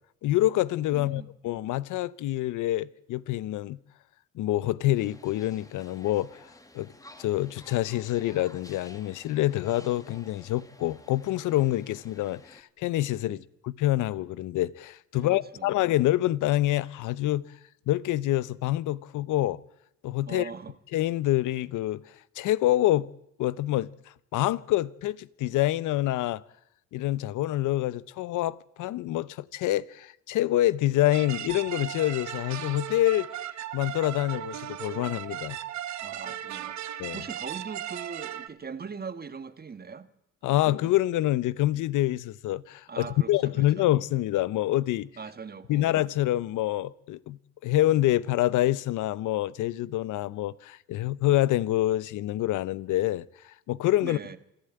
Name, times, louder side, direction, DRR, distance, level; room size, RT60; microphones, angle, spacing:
voice 1, 0.2-3.8 4.3-6.5 6.7-6.9 7.2-17.5 17.9-19.6 20.0-20.5 20.9-22.0 22.3-23.1 23.4-23.9 24.3-26.4 26.9-33.3 33.7-35.6 37.0-37.2 40.4-45.1 45.7-54.2, left 15 dB, 85° left, 0.7 m, -26 dB
voice 2, 0.9-1.3 13.2-13.4 15.2-15.7 20.3-20.7 36.0-40.1 40.5-40.7 42.9-43.9 45.2-45.9 54.0-54.4, right 5 dB, 30° right, 1.5 m, -41 dB
sound 1, 4.9-12.6, left 1 dB, 10° left, 1.6 m, -52 dB
sound 2, 31.1-38.5, right 11 dB, 65° right, 1.1 m, -37 dB
26.5 x 11.5 x 9.0 m
cardioid pair, 90°, 30 cm